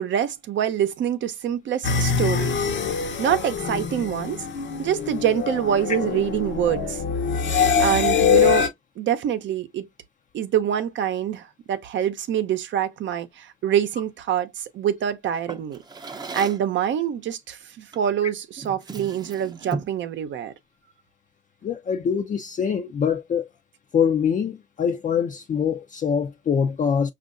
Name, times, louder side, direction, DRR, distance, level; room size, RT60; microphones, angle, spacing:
voice 1, 0.0-2.6 3.2-4.4 4.8-7.0 7.8-8.7 9.0-9.9 10.3-15.8 16.3-20.5, right 9 dB, 70° right, 0.7 m, -25 dB
sound 1, 1.8-8.7, left 7 dB, 65° left, 0.8 m, -23 dB
Drawer open or close, 15.5-16.7 17.9-18.2 18.6-20.0, right 3 dB, 20° right, 0.6 m, -36 dB
voice 2, 21.6-23.5 23.9-27.1, left 7 dB, 40° left, 0.4 m, -24 dB
5.3 x 2.4 x 2.5 m
cardioid pair, 90°, 20 cm